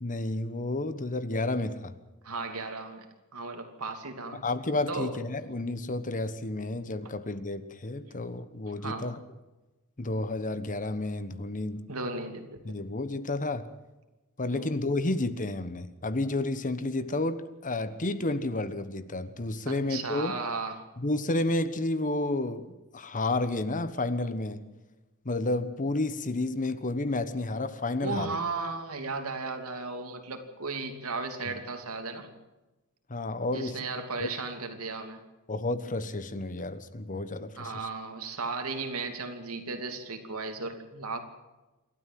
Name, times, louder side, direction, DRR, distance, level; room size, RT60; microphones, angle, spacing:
voice 1, 0.0-1.9 4.3-9.2 10.0-11.8 12.6-13.7 14.4-20.3 21.0-24.6 25.2-28.3 31.5-31.6 33.1-33.8 34.2-34.3 35.5-37.7, left 2 dB, 35° left, 1.2 m, -31 dB
voice 2, 2.2-3.1 3.3-4.4 4.9-5.2 8.0-8.2 8.8-9.1 11.9-12.5 14.5-14.7 19.7-20.8 28.0-32.3 33.5-35.2 37.6-41.2, right 3 dB, 80° right, 2.8 m, -35 dB
28.0 x 13.0 x 7.6 m
head